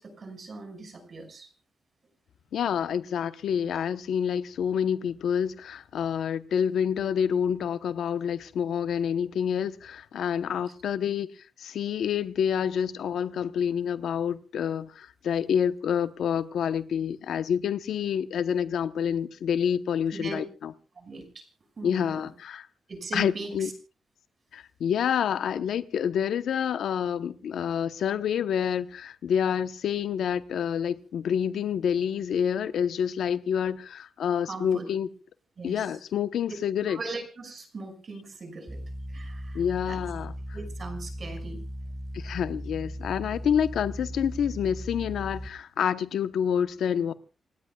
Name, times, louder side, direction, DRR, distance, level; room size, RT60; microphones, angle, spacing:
voice 1, 0.0-1.5 20.1-20.4 21.0-21.4 21.8-22.3 22.9-23.7 34.4-34.9 35.6-36.0 36.9-38.8 39.1-40.0 40.5-41.6, right 3 dB, 40° right, 5.7 m, -39 dB
voice 2, 2.5-11.3 11.6-20.7 21.8-22.7 23.1-23.7 24.5-35.1 35.6-37.0 39.5-40.3 42.1-47.1, left 8 dB, 85° left, 0.9 m, -28 dB
sound 1, 38.7-45.5, equal, 5° right, 1.0 m, -38 dB
29.0 x 17.0 x 2.3 m
wide cardioid pair, 160°, 0 cm